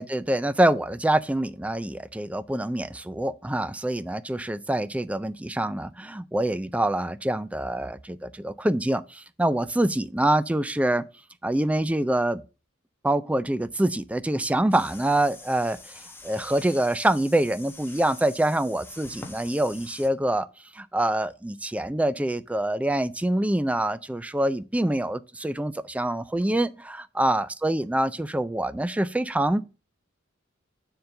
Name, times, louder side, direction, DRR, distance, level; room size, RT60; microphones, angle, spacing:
voice 1, 0.0-11.0 11.4-12.4 13.0-20.5 20.7-29.6, right 1 dB, 5° right, 0.3 m, -25 dB
sound 1, 14.7-20.1, left 3 dB, 10° left, 1.0 m, -45 dB
7.0 x 3.9 x 6.5 m
head